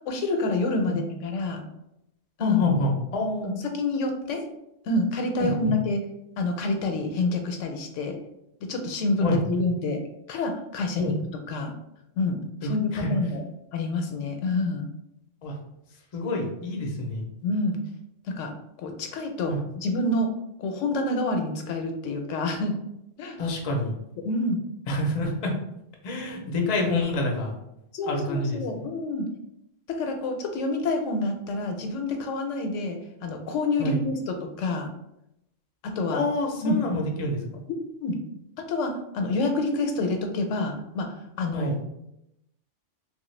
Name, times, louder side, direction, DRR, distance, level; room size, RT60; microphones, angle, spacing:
voice 1, 0.1-1.6 2.4-2.6 3.7-4.4 4.9-6.0 6.4-8.2 8.6-10.0 10.3-11.1 11.5-11.7 12.2-13.4 13.7-14.9 17.4-17.8 18.3-18.5 18.8-20.3 20.6-22.8 23.2-23.4 24.2-24.6 27.9-29.3 29.9-34.9 35.8-36.2 36.6-36.8 38.0-38.2 38.7-41.8, left 2 dB, 80° left, 4 dB, 0.9 m, -27 dB
voice 2, 2.4-3.5 5.4-5.7 9.2-9.4 11.0-11.1 12.6-13.1 15.4-15.5 16.1-17.3 19.5-19.6 23.4-23.9 24.9-25.5 26.0-27.5 28.1-28.6 33.8-34.0 36.1-37.6 41.5-41.8, left 1 dB, 45° left, 1 dB, 0.5 m, -27 dB
3.1 x 2.3 x 3.1 m, 0.84 s
omnidirectional pair, 1.3 m